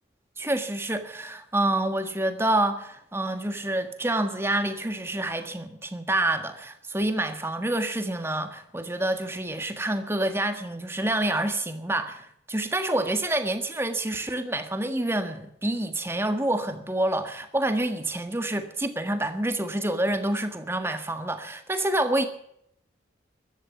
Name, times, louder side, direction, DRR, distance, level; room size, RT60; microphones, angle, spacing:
voice 1, 0.4-22.3, right 1 dB, 15° right, 1.5 m, -27 dB
15.0 x 12.0 x 7.1 m
head